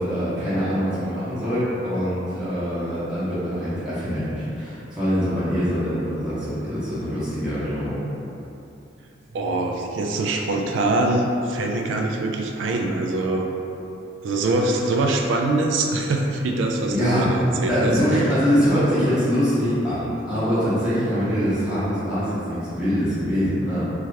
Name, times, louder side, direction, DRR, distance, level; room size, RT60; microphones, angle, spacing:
voice 1, 0.0-8.0 16.9-17.3 17.7-23.8, equal, 5° right, -14 dB, 0.7 m, -23 dB
voice 2, 9.3-13.5 14.2-18.0, right 2 dB, 90° right, 2 dB, 0.3 m, -23 dB
2.7 x 2.4 x 3.1 m, 2.8 s
head